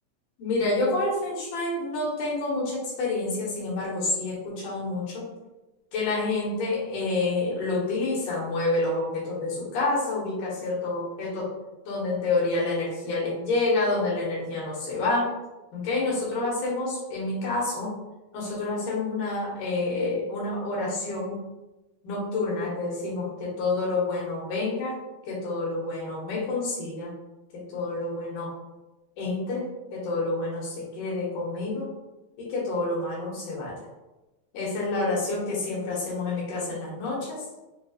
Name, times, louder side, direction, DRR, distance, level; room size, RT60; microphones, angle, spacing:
voice 1, 0.4-5.2 5.9-11.5 11.9-15.3 15.7-17.9 18.3-21.4 22.0-25.0 25.3-27.1 27.5-28.5 29.2-29.7 29.9-31.9 32.4-33.8 34.5-37.4, left 2 dB, 90° left, -5 dB, 2.7 m, -28 dB
5.6 x 2.8 x 2.4 m, 1.1 s
omnidirectional pair, 3.4 m